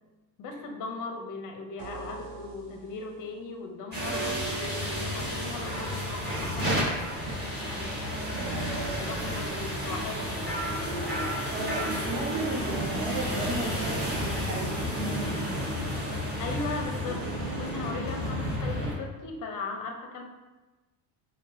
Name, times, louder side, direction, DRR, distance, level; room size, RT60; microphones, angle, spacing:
voice 1, 0.4-7.0 7.7-8.2 8.9-10.6 16.4-17.2 17.6-20.2, left 3 dB, 40° left, 3 dB, 0.6 m, -38 dB
sound 1, 1.8-3.4 4.0-7.2 8.3-11.1 11.5-11.6 12.7-15.8 17.1-18.5, right 4 dB, 45° right, 0.5 m, -41 dB
sound 2, 3.9-18.9, equal, 20° right, 1.2 m, -31 dB
voice 2, 11.5-15.5, right 2 dB, 90° right, -2 dB, 1.0 m, -34 dB
3.8 x 2.2 x 2.5 m, 1.2 s
supercardioid pair, 110°, 50 cm